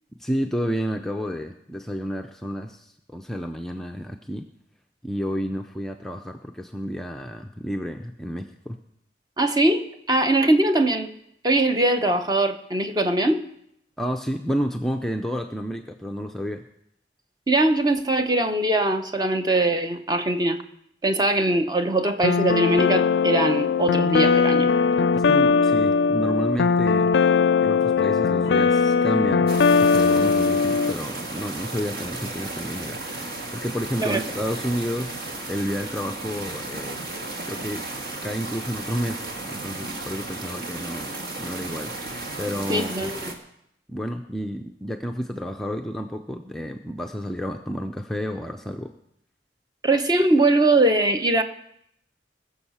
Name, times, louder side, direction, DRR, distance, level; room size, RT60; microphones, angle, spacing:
voice 1, 0.2-4.5 5.0-8.8 14.0-16.6 25.1-27.1 27.6-37.0 37.4-37.8 38.2-41.1 41.4-43.1 43.9-48.9, equal, ahead, 3 dB, 0.5 m, -30 dB
voice 2, 9.4-11.1 11.4-13.5 17.5-20.6 21.0-24.7 34.0-34.2 42.7-43.3 49.8-51.4, right 2 dB, 25° right, 7 dB, 0.8 m, -21 dB
sound 1, 22.2-30.9, left 5 dB, 75° left, 0.4 m, -20 dB
sound 2, 29.5-43.3, right 2 dB, 55° right, 1.8 m, -34 dB
20.5 x 7.2 x 5.6 m, 0.77 s
head